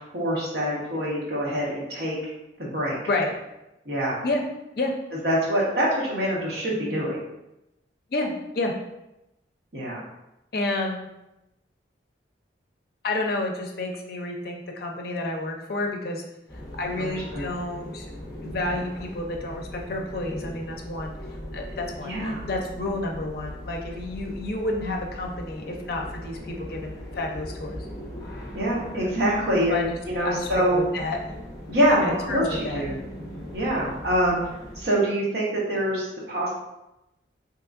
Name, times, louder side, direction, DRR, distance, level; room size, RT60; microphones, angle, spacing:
voice 1, 0.1-2.2 2.6-3.0 3.8-4.2 5.2-7.2 9.7-10.0 17.0-17.4 22.0-22.4 28.5-30.8 31.7-32.9 33.5-34.4 34.7-36.5, equal, 55° right, -5 dB, 1.1 m, -25 dB
voice 2, 8.1-8.7 10.5-11.1 13.0-16.2 16.8-18.1 18.4-21.1 21.5-27.8 29.7-31.2 31.9-32.8, left 2 dB, 55° left, 1 dB, 0.5 m, -30 dB
sound 1, 16.5-34.9, equal, 20° left, 0.7 m, -39 dB
3.6 x 2.9 x 2.5 m, 0.92 s
head